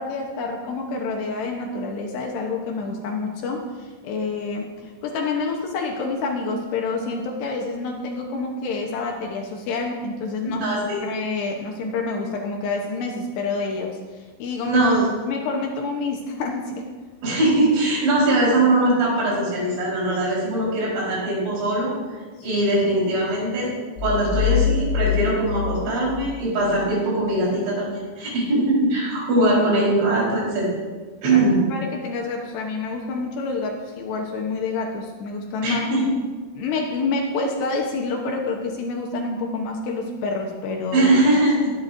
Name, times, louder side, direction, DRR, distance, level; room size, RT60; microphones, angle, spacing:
voice 1, 0.0-10.6 11.0-14.8 15.3-16.9 22.4-22.6 31.3-31.4 31.7-35.9 36.6-41.1, left 3 dB, 70° left, 1 dB, 2.9 m, -28 dB
voice 2, 10.6-11.0 14.6-15.0 17.2-21.9 22.4-23.7 24.0-30.7 31.2-31.6 35.6-36.0 40.9-41.7, right 1 dB, 70° right, -6 dB, 6.7 m, -21 dB
sound 1, 24.0-26.9, left 9 dB, 90° left, 3.5 m, -24 dB
20.5 x 10.0 x 2.7 m, 1.4 s
omnidirectional pair, 5.5 m